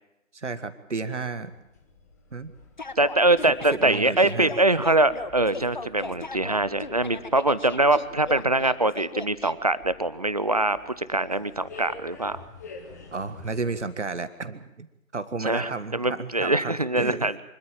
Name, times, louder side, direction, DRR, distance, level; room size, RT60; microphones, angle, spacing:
voice 1, 0.3-1.5 2.3-2.5 3.8-4.5 13.1-14.9 15.1-17.3, right 4 dB, 60° right, 13 dB, 1.8 m, -32 dB
sound 1, 1.4-13.9, left 4 dB, 10° left, 1.3 m, -49 dB
sound 2, 2.8-9.5, left 3 dB, 35° left, 0.7 m, -38 dB
voice 2, 3.0-12.4 15.4-17.4, right 2 dB, 30° right, 16 dB, 0.7 m, -23 dB
25.5 x 13.5 x 8.9 m, 0.89 s
figure-of-eight pair, 150°, 40 cm